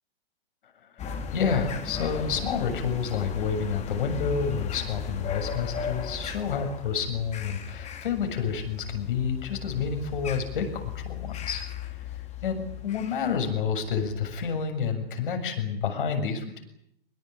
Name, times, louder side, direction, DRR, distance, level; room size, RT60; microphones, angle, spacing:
voice 1, 0.9-12.0 12.4-16.6, left 6 dB, 60° left, 6 dB, 7.2 m, -29 dB
sound 1, 1.0-14.7, left 7 dB, 25° left, 3.7 m, -36 dB
25.0 x 21.0 x 9.9 m, 0.74 s
figure-of-eight pair, 110°, 30 cm